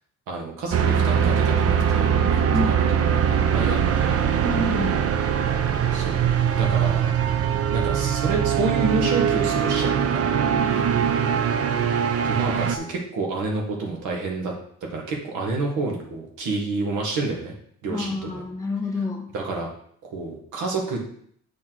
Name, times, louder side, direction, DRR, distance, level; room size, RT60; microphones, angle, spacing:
voice 1, 0.3-4.2 5.9-6.2 6.5-7.1 7.7-10.9 12.2-14.5 14.9-17.5 17.8-18.4 19.3-19.7 20.0-21.0, right 3 dB, 85° right, 0 dB, 1.7 m, -29 dB
sound 1, 0.7-12.8, right 8 dB, 50° right, 0.7 m, -22 dB
voice 2, 2.5-2.8 4.4-5.1 11.2-11.3 17.9-19.3, left 2 dB, 10° left, 0 dB, 1.8 m, -28 dB
7.3 x 3.8 x 4.6 m, 0.64 s
cardioid pair, 90°, 30 cm